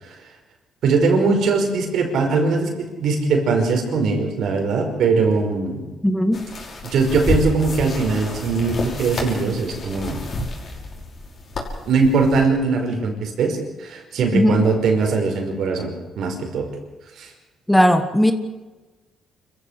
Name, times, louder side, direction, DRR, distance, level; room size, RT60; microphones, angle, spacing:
voice 1, 0.8-5.8 6.8-10.2 11.9-15.9 16.2-16.7 17.2-17.3, right 4 dB, 70° right, 4 dB, 5.3 m, -20 dB
voice 2, 6.0-6.5 14.3-14.6 17.7-18.3, equal, 5° left, 9 dB, 1.7 m, -17 dB
sound 1, 6.3-12.5, left 2 dB, 50° left, 5.8 m, -30 dB
26.0 x 15.0 x 8.3 m, 1.2 s
cardioid pair, 90°, 0 cm